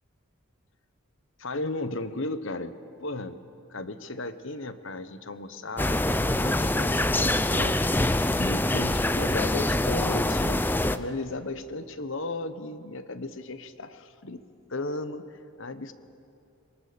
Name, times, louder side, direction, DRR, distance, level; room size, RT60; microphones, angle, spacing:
voice 1, 1.4-2.7 3.0-3.4 3.7-10.6 10.9-14.4 14.7-15.9, left 2 dB, 60° left, 11 dB, 1.1 m, -35 dB
sound 1, 5.8-11.0, left 1 dB, 10° left, 0.5 m, -25 dB
26.0 x 24.0 x 6.9 m, 2.6 s
head